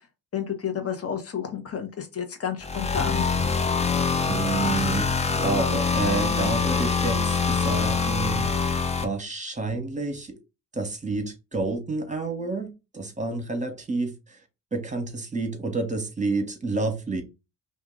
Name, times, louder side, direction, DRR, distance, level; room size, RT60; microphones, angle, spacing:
voice 1, 0.3-3.2, left 8 dB, 30° left, 5 dB, 1.1 m, -31 dB
sound 1, 2.6-9.0, left 5 dB, 15° left, 0.5 m, -24 dB
voice 2, 4.3-5.1 5.4-8.7 9.0-10.4 10.7-14.4 14.7-17.2, right 3 dB, 15° right, 5 dB, 1.3 m, -29 dB
2.8 x 2.6 x 3.8 m, 0.26 s
hypercardioid pair, 45°, 46 cm